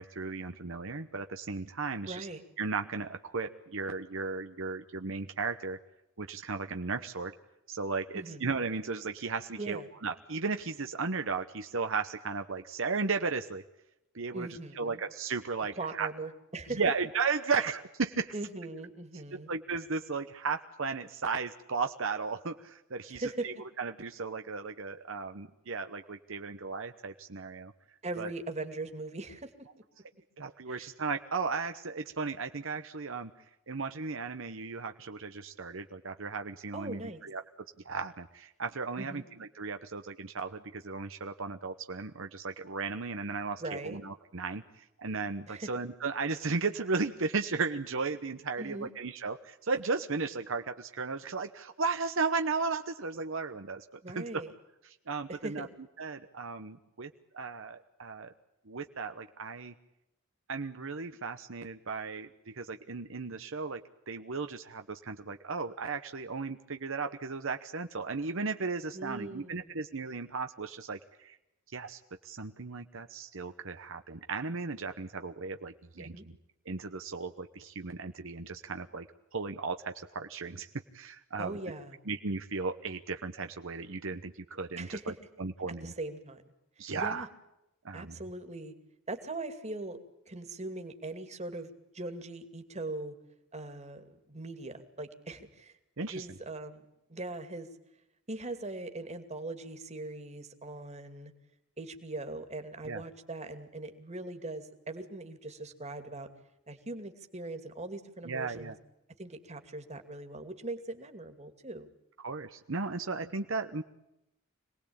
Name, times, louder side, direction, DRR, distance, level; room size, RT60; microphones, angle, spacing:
voice 1, 0.0-2.3 2.6-5.8 6.2-7.3 7.7-13.6 14.1-14.5 14.7-16.1 16.8-18.3 19.3-27.7 28.2-28.3 30.4-33.3 33.7-37.4 37.8-54.4 54.8-55.7 56.0-58.3 58.7-59.7 60.5-71.4 71.7-76.3 76.7-81.6 82.1-85.9 86.8-87.3 87.8-88.2 96.0-96.3 102.9-103.0 108.2-108.8 112.2-113.8, right 4 dB, 65° right, 7 dB, 1.1 m, -35 dB
voice 2, 2.1-2.4 8.1-8.5 9.6-9.8 14.3-15.0 15.8-16.8 17.5-17.6 18.3-19.5 23.1-23.5 28.0-29.5 30.7-30.9 36.7-37.2 39.0-39.2 43.6-44.0 45.5-45.7 48.6-48.9 54.0-54.5 55.3-55.7 68.9-69.8 76.0-76.3 81.4-82.0 84.8-85.1 85.8-86.4 86.9-87.3 87.9-88.7 89.1-90.0 90.3-93.1 93.5-95.7 96.1-96.8 97.1-97.7 98.3-101.3 101.8-106.3 106.7-108.7 109.2-111.9, right 2 dB, 35° right, 7 dB, 2.5 m, -40 dB
26.5 x 19.5 x 8.8 m, 0.87 s
head